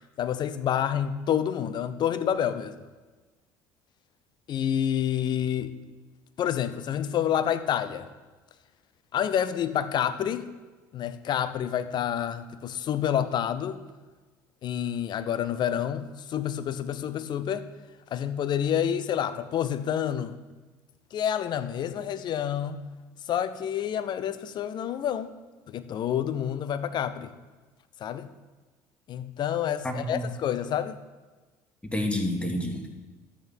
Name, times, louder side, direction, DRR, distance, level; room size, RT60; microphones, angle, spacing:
voice 1, 0.2-2.7 4.5-5.7 6.4-8.1 9.1-10.5 10.9-13.8 14.6-17.7 18.1-20.3 21.1-22.8 23.3-25.3 25.7-27.3 28.0-28.3 29.1-31.0, left 9 dB, 50° left, 12 dB, 0.8 m, -28 dB
voice 2, 29.8-30.2 31.9-32.9, left 1 dB, 10° left, 3 dB, 2.2 m, -29 dB
13.0 x 8.5 x 4.5 m, 1.3 s
hypercardioid pair, 65°, 9 cm